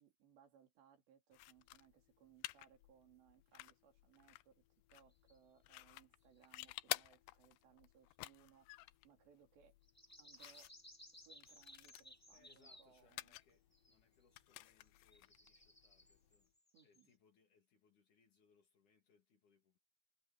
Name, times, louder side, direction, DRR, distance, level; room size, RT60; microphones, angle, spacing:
voice 1, 0.0-4.6 4.9-9.8 10.2-10.7 11.1-13.3 16.7-17.1, right 8 dB, 75° right, 5.4 m, -68 dB
sound 1, 1.3-16.5, left 19 dB, 80° left, 2.7 m, -53 dB
sound 2, 5.1-5.4 6.4-6.5 9.8-12.9 13.7-14.1 14.5-17.1, left 1 dB, 5° left, 1.2 m, -61 dB
sound 3, 11.2-16.4, left 2 dB, 25° left, 6.2 m, -84 dB
voice 2, 12.3-16.5 16.8-19.8, left 5 dB, 50° left, 3.2 m, -74 dB
omnidirectional pair, 5.1 m